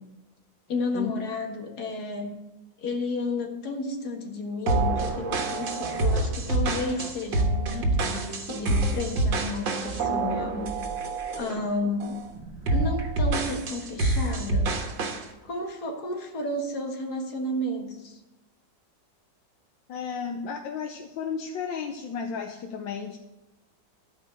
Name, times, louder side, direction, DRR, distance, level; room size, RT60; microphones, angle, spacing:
voice 1, 0.7-2.4 2.8-5.3 5.5-10.6 11.4-12.2 12.7-15.0 15.4-18.2, left 2 dB, 55° left, 2 dB, 2.1 m, -32 dB
sound 1, 4.7-11.6 12.0-12.3 12.7-15.2, right 2 dB, 80° right, 2.0 m, -27 dB
sound 2, 9.9-11.4 12.1-13.1 13.4-13.6 14.0-14.9, right 2 dB, 45° right, 3.4 m, -40 dB
voice 2, 19.9-23.2, left 6 dB, 80° left, 4 dB, 1.5 m, -33 dB
14.0 x 5.0 x 7.7 m, 1.0 s
omnidirectional pair, 2.0 m